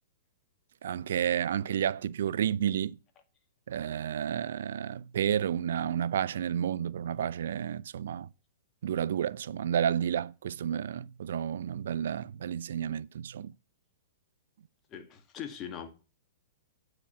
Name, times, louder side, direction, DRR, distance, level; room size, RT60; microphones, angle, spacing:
voice 1, 0.8-3.0 3.7-8.3 8.8-13.5, right 9 dB, 70° right, 0.4 m, -31 dB
voice 2, 14.9-15.9, left 8 dB, 30° left, 1.8 m, -41 dB
8.5 x 4.9 x 7.0 m
hypercardioid pair, 115°, 0 cm